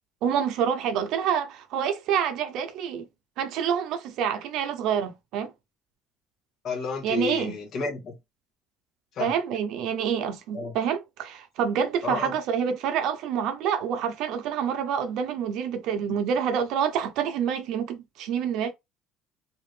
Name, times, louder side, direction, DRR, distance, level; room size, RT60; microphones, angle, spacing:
voice 1, 0.2-3.1 3.4-5.5 7.0-7.6 9.2-18.7, right 8 dB, 65° right, 0.7 m, -27 dB
voice 2, 6.6-8.1 9.2-9.3 10.5-10.7 12.0-12.3, left 4 dB, 45° left, 1.0 m, -31 dB
2.8 x 2.6 x 3.2 m
cardioid pair, 150°, 0 cm